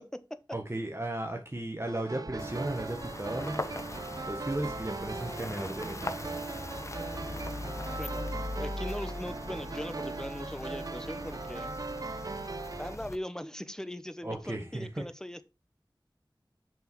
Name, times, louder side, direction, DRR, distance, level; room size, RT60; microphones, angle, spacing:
voice 1, 0.0-0.4 8.0-11.7 12.8-15.4, left 1 dB, 5° left, 12 dB, 0.9 m, -40 dB
voice 2, 0.5-3.6 4.3-6.2 14.2-15.0, right 1 dB, 30° right, 3 dB, 1.4 m, -35 dB
sound 1, 1.9-13.0, right 4 dB, 45° right, 0.3 m, -39 dB
sound 2, 2.4-13.2, left 2 dB, 35° left, 0.9 m, -40 dB
6.9 x 6.0 x 4.6 m, 0.27 s
wide cardioid pair, 40°, 8 cm